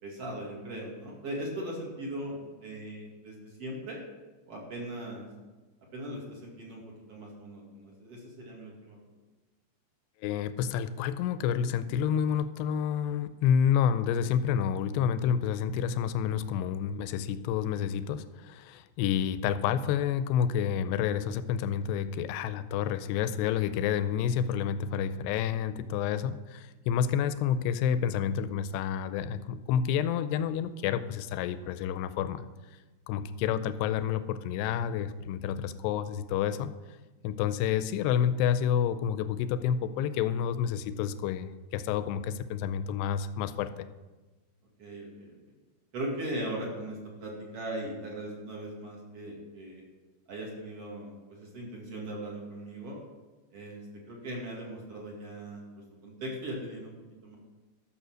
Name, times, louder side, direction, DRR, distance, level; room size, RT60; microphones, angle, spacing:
voice 1, 0.0-4.0 4.5-5.3 5.9-6.8 7.1-9.0 44.8-45.4 45.9-49.8 50.3-53.0 53.5-53.8 54.1-55.6 56.0-56.9 57.2-57.4, right 1 dB, 40° right, -2 dB, 2.6 m, -39 dB
voice 2, 10.2-32.5 33.1-36.7 37.2-43.9, left 8 dB, 85° left, 12 dB, 2.6 m, -29 dB
12.5 x 6.7 x 6.3 m, 1.2 s
omnidirectional pair, 4.9 m